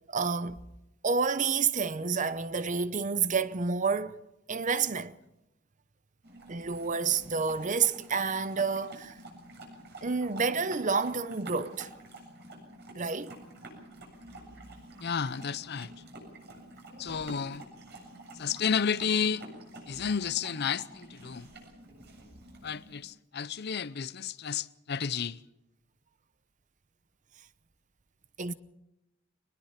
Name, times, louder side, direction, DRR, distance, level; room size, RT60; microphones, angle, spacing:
voice 1, 0.1-0.6 1.0-4.2 4.5-5.1 6.5-9.2 10.0-11.9 12.9-13.4 28.4-28.5, right 5 dB, 40° right, 0.8 m, -29 dB
sound 1, 6.2-23.0, right 1 dB, 55° right, 7.4 m, -48 dB
voice 2, 15.0-15.9 17.0-17.6 18.4-19.5 19.9-21.5 22.6-25.4, left 6 dB, 55° left, 0.6 m, -31 dB
23.0 x 20.5 x 5.8 m
head